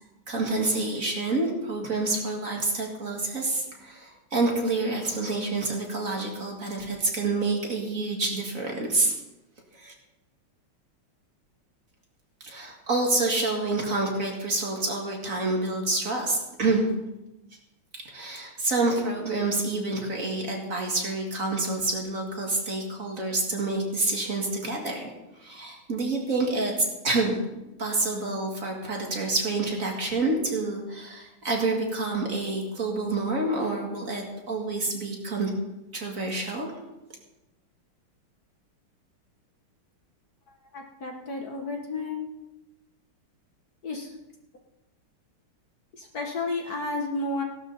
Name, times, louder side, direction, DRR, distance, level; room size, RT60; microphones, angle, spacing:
voice 1, 0.3-9.1 9.8-9.9 12.4-16.9 18.1-25.0 25.4-26.7 27.0-27.4 27.8-35.5 35.9-36.7, right 2 dB, 40° right, 0 dB, 2.3 m, -28 dB
voice 2, 40.7-42.3 43.8-44.1 46.0-47.4, left 3 dB, 50° left, 2 dB, 1.8 m, -32 dB
17.0 x 12.0 x 4.1 m, 0.98 s
omnidirectional pair, 2.4 m